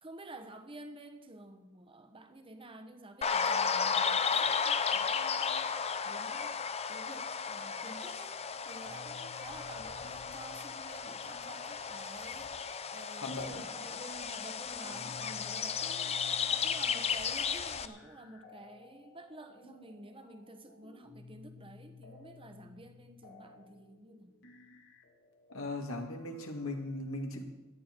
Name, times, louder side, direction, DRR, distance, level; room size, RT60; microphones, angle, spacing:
voice 1, 0.0-5.7 6.0-6.6 6.9-8.4 8.6-16.1 16.5-24.3, right 2 dB, 25° right, 7 dB, 1.1 m, -51 dB
sound 1, 3.2-17.9, left 6 dB, 30° left, 0.6 m, -34 dB
sound 2, 7.6-8.3 8.5-26.8, left 4 dB, 55° left, 1.9 m, -56 dB
voice 2, 13.2-13.6 25.5-27.5, left 2 dB, 70° left, 3 dB, 2.1 m, -38 dB
17.5 x 12.0 x 4.6 m, 1.1 s
head